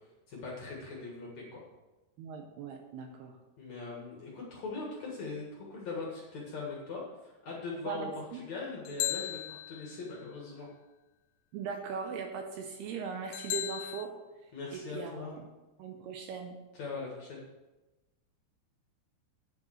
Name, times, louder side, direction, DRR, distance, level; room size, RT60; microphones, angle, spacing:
voice 1, 0.3-1.6 3.6-10.7 14.5-15.3 16.7-17.4, left 3 dB, 55° left, -3 dB, 2.3 m, -41 dB
voice 2, 2.2-3.4 7.9-8.4 11.5-14.1 14.7-15.5 15.8-16.6, right 6 dB, 75° right, 4 dB, 2.5 m, -39 dB
sound 1, 8.9-10.2 13.3-14.1, left 15 dB, 85° left, 2.4 m, -36 dB
9.3 x 6.9 x 6.4 m, 1.1 s
omnidirectional pair, 5.1 m